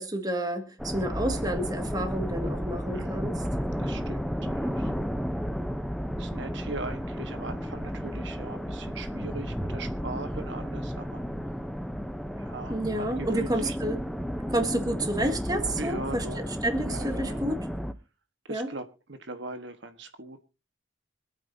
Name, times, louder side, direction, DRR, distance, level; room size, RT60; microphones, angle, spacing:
voice 1, 0.0-3.4 12.7-14.0 14.5-17.6 18.5-18.7, right 1 dB, 20° right, 1.9 m, -30 dB
sound 1, 0.8-17.9, equal, ahead, 0.7 m, -33 dB
voice 2, 2.9-3.2 3.8-4.9 6.2-11.2 12.4-13.8 15.8-16.4 16.9-17.4 18.5-20.4, right 3 dB, 65° right, 1.3 m, -40 dB
26.0 x 9.1 x 2.7 m
head